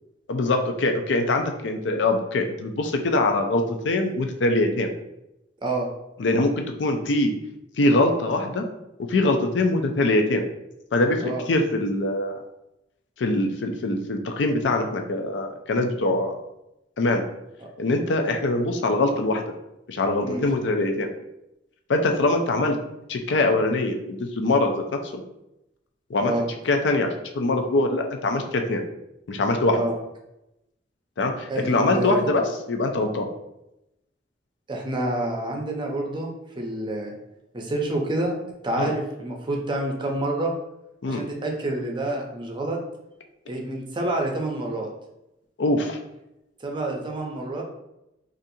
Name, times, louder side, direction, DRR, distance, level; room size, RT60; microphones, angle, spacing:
voice 1, 0.3-4.9 6.2-7.3 7.8-8.6 9.1-10.4 10.9-12.3 13.2-16.3 17.0-17.2 17.8-19.4 19.9-21.1 21.9-22.8 23.1-24.7 26.1-26.3 26.6-27.1 27.3-28.8 29.3-29.8 31.2-33.3 38.8-38.9 41.0-41.2 45.6-46.0, left 2 dB, 80° left, 4 dB, 0.5 m, -23 dB
voice 2, 31.5-32.3 34.7-36.3 36.6-37.1 37.5-38.4 38.6-40.5 41.1-42.8 43.5-44.9 46.6-47.6, right 2 dB, 25° right, 1 dB, 0.5 m, -28 dB
4.1 x 2.5 x 2.6 m, 0.88 s
head